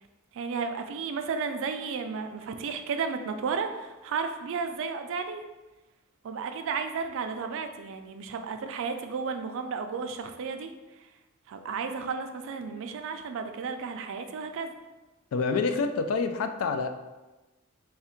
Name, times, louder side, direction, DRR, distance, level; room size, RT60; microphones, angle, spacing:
voice 1, 0.3-5.4 6.2-10.7 11.5-14.7, right 5 dB, 65° right, 7 dB, 0.4 m, -33 dB
voice 2, 15.3-16.9, left 4 dB, 75° left, 7 dB, 0.3 m, -27 dB
3.3 x 2.4 x 4.3 m, 1.1 s
head